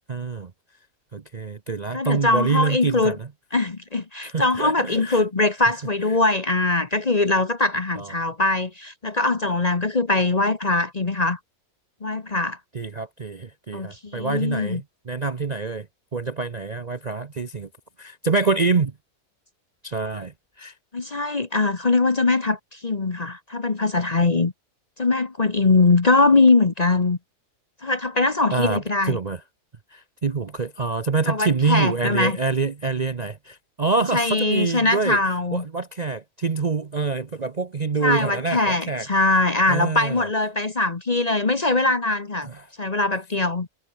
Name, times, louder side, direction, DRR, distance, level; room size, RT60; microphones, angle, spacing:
voice 1, 0.1-0.5 1.1-3.3 4.2-5.2 8.0-8.1 12.7-15.9 16.1-17.7 18.0-18.9 19.8-20.7 28.5-29.4 29.9-35.2 35.5-39.1 39.7-40.3 42.4-42.7, right 4 dB, 35° right, 0.7 m, -26 dB
voice 2, 1.9-3.2 3.5-11.4 12.0-12.6 13.7-14.8 20.9-24.5 25.0-27.2 27.8-29.2 31.3-32.4 34.1-35.7 38.0-42.5 42.8-43.7, left 3 dB, 30° left, 1.0 m, -22 dB
omnidirectional pair, 1.6 m